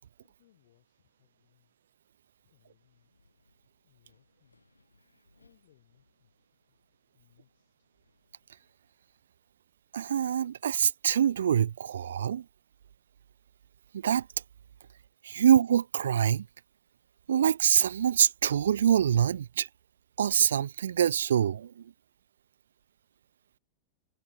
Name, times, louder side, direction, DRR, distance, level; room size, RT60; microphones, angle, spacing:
voice 1, 0.2-1.8 2.4-3.1 3.8-4.7 5.4-6.3 6.7-6.8 7.1-7.9, left 14 dB, 55° left, 7.7 m, -68 dB
Wind, 2.4-9.3, left 3 dB, 80° left, 6.8 m, -71 dB
voice 2, 9.9-12.5 13.9-14.3 15.2-16.5 17.3-19.7 20.2-21.9, right 9 dB, 65° right, 0.3 m, -25 dB
figure-of-eight pair, 90°, 0 cm